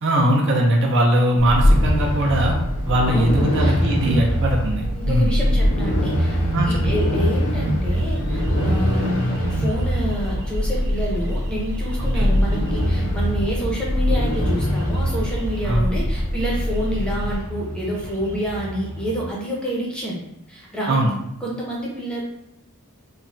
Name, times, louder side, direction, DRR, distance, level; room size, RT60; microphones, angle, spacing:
voice 1, 0.0-2.5 2.9-5.4 6.5-6.9 12.1-12.3 15.6-15.8 20.9-21.1, right 1 dB, 55° right, 0 dB, 0.5 m, -20 dB
sound 1, 1.4-17.4, equal, 70° left, 0.5 m, -22 dB
voice 2, 3.1-3.7 4.0-4.2 5.0-6.4 6.6-9.2 9.5-20.2 20.5-21.0 21.4-22.2, equal, 5° left, -5 dB, 0.6 m, -28 dB
sound 2, 7.9-19.3, equal, 80° right, 0.8 m, -37 dB
3.0 x 2.1 x 2.5 m, 0.82 s
head